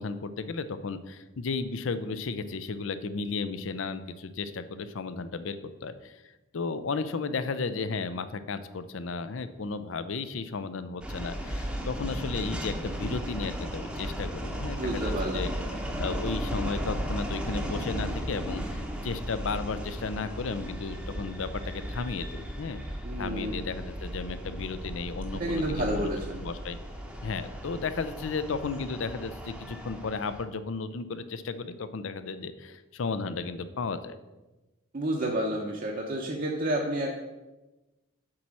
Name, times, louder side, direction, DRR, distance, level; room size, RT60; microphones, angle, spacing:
voice 1, 0.0-22.8 23.2-26.8 27.2-34.2, left 4 dB, 65° left, 12 dB, 0.5 m, -34 dB
sound 1, 11.0-30.4, equal, 5° right, 0.8 m, -35 dB
voice 2, 14.8-15.4 23.0-23.6 25.3-26.4 34.9-37.1, right 1 dB, 40° right, -1 dB, 0.7 m, -30 dB
7.6 x 4.2 x 6.1 m, 1.1 s
head